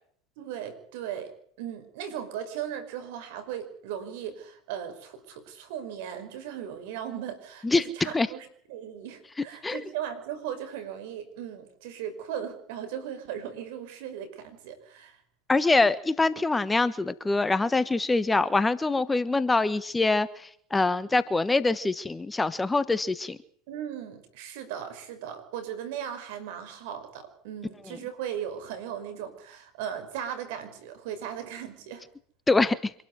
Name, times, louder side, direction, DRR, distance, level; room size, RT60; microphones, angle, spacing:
voice 1, 0.4-1.3 1.6-15.2 23.7-32.0, right 9 dB, 65° right, 9 dB, 5.6 m, -37 dB
voice 2, 7.6-8.3 9.6-9.8 15.5-23.4 27.8-28.0 32.5-32.9, left 3 dB, 15° left, 15 dB, 1.3 m, -24 dB
26.0 x 12.5 x 9.5 m, 0.62 s
hypercardioid pair, 90°, 0 cm